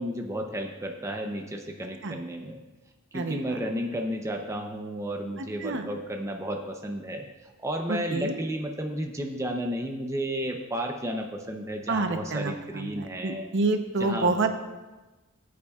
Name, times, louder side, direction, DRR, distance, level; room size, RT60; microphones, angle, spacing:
voice 1, 0.0-2.6 3.1-13.5 14.0-14.5, equal, 15° right, 2 dB, 0.6 m, -33 dB
voice 2, 3.1-3.4 5.6-5.9 7.9-8.4 11.9-14.5, right 3 dB, 55° right, 6 dB, 0.8 m, -28 dB
17.0 x 8.6 x 2.4 m, 1.2 s
head